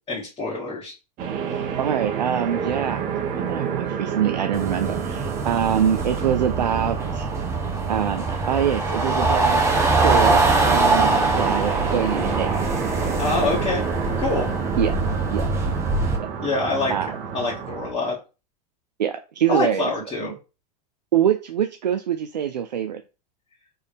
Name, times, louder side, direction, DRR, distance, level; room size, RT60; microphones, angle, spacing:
voice 1, 0.1-0.9 13.2-13.8 14.2-14.5 16.4-16.9 17.3-18.2 19.5-20.4, left 3 dB, 25° left, -5 dB, 1.6 m, -25 dB
sound 1, 1.2-17.9, right 7 dB, 40° right, 1.1 m, -30 dB
voice 2, 1.8-3.0 3.3-7.3 7.9-12.5 14.8-15.0 15.3-15.5 16.9-17.1 19.0-19.9 20.2-20.3 21.1-23.0, right 9 dB, 80° right, 7 dB, 0.4 m, -24 dB
sound 2, 4.5-16.2, right 3 dB, 15° right, 0.9 m, -23 dB
4.3 x 3.3 x 3.4 m, 0.31 s
hypercardioid pair, 95°, 21 cm